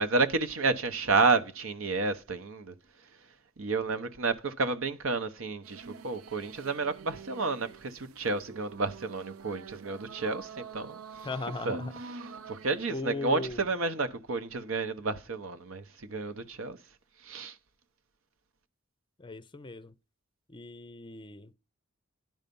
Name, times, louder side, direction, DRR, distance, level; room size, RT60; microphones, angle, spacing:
voice 1, 0.0-2.7 3.6-11.3 11.6-11.8 12.1-16.8 17.2-17.5, right 3 dB, 70° right, 1.0 m, -31 dB
sound 1, 5.6-13.0, right 5 dB, 85° right, 0.6 m, -46 dB
voice 2, 11.2-11.9 12.9-13.7 19.2-19.9 20.5-21.5, left 2 dB, 25° left, 0.5 m, -38 dB
10.5 x 5.6 x 5.3 m
head